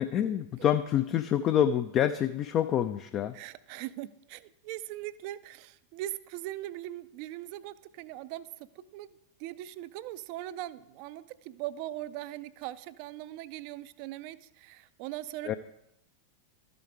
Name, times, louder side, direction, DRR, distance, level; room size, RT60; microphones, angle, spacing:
voice 1, 0.0-3.4 15.4-15.6, left 10 dB, 30° left, 10 dB, 0.4 m, -27 dB
voice 2, 3.3-15.6, right 14 dB, 45° right, 16 dB, 0.4 m, -40 dB
12.5 x 5.1 x 4.7 m, 0.86 s
figure-of-eight pair, 90°, 0 cm